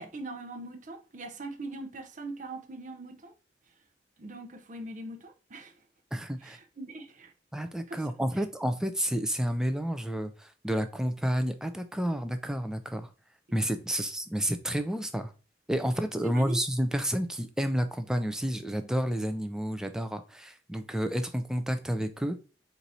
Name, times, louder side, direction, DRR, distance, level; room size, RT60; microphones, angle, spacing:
voice 1, 0.0-3.3 4.2-5.8 6.4-7.3 7.9-8.1 16.2-16.6, right 2 dB, 45° right, 0.6 m, -41 dB
voice 2, 6.1-6.6 7.5-13.1 13.5-15.3 15.7-22.4, equal, 5° right, 0.4 m, -30 dB
4.6 x 2.7 x 4.1 m
head